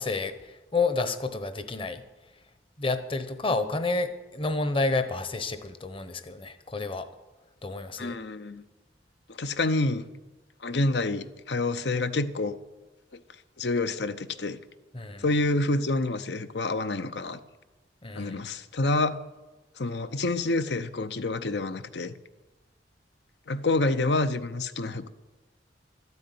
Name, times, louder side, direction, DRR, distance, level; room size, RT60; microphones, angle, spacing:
voice 1, 0.0-2.0 2.8-7.1 7.6-8.2 14.9-15.2 18.0-18.4, left 3 dB, 30° left, 11 dB, 1.0 m, -30 dB
voice 2, 8.0-8.6 9.4-10.0 10.6-12.6 13.1-13.2 13.6-14.6 15.2-17.4 18.1-19.2 19.8-22.1 23.5-25.1, left 2 dB, 65° left, 12 dB, 0.8 m, -28 dB
12.5 x 9.6 x 9.5 m, 1.1 s
head